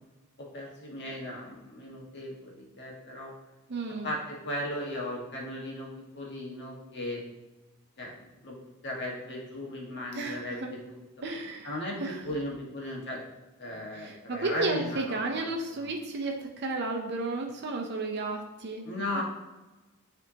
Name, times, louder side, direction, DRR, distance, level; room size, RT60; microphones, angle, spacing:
voice 1, 0.4-3.3 4.0-7.2 8.0-8.6 8.8-11.0 11.6-12.0 12.2-13.2 13.6-15.9 18.8-19.2, left 1 dB, 55° left, -3 dB, 1.5 m, -37 dB
voice 2, 3.7-4.1 10.1-10.7 11.2-11.7 12.0-12.2 13.9-18.9 19.1-19.2, right 2 dB, 50° right, 2 dB, 0.6 m, -33 dB
9.5 x 3.5 x 2.8 m, 1.1 s
head